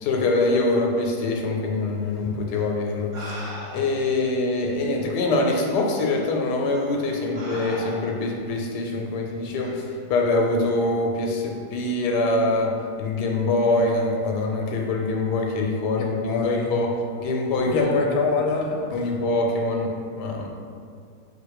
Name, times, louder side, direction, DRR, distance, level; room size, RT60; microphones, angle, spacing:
voice 1, 0.0-3.4 3.7-16.9 17.2-17.9 18.9-20.5, left 2 dB, 90° left, 1 dB, 1.2 m, -24 dB
sound 1, 2.5-2.6 3.1-4.1 4.9-5.0 5.9-6.1 6.7-6.9 7.4-8.3 9.6-9.8, equal, 45° right, 1.2 m, -38 dB
voice 2, 16.0-16.7 17.7-19.0, left 4 dB, 70° left, 0 dB, 1.0 m, -24 dB
4.2 x 2.5 x 4.6 m, 2.2 s
omnidirectional pair, 1.7 m